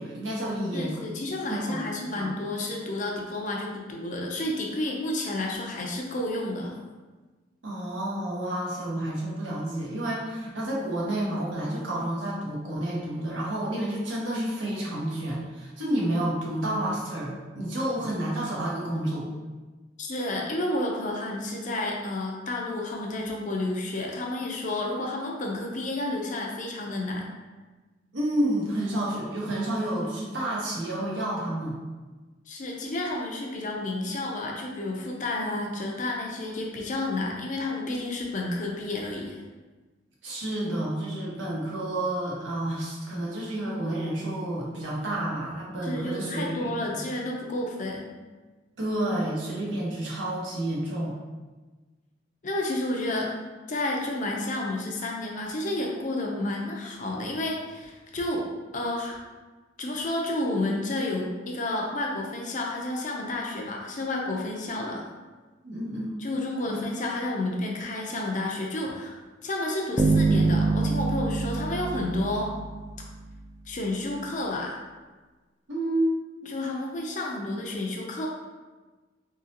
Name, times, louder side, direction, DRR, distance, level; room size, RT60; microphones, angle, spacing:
voice 1, 0.0-1.0 1.5-1.8 2.1-2.3 7.6-19.3 28.1-31.8 40.2-46.8 48.8-51.2 65.6-66.2 66.6-66.8 75.7-76.1, right 1 dB, 85° right, -5 dB, 1.1 m, -30 dB
voice 2, 0.7-6.8 20.0-27.3 32.5-39.4 45.8-48.1 52.4-53.3 53.7-58.4 58.7-59.2 59.8-65.1 66.2-72.5 73.7-74.8 76.4-78.3, left 2 dB, 45° left, 0 dB, 0.6 m, -31 dB
Bass guitar, 70.0-73.1, right 3 dB, 15° right, 0.4 m, -25 dB
3.8 x 3.0 x 2.8 m, 1.3 s
head